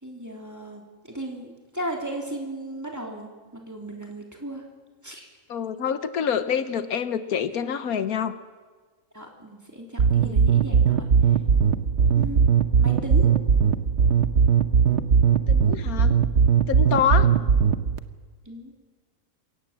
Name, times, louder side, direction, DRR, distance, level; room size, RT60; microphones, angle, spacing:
voice 1, 0.0-4.6 5.0-5.3 9.1-11.0 11.6-11.8 12.2-12.4 12.8-13.3 17.1-17.4 18.4-18.8, right 1 dB, 10° right, 1 dB, 3.2 m, -36 dB
voice 2, 5.5-8.3 10.2-10.4 15.5-16.2 16.7-17.3, left 8 dB, 80° left, 11 dB, 1.5 m, -26 dB
sound 1, 10.0-18.0, right 7 dB, 55° right, 1.1 m, -19 dB
23.0 x 18.0 x 7.4 m, 1.4 s
omnidirectional pair, 1.5 m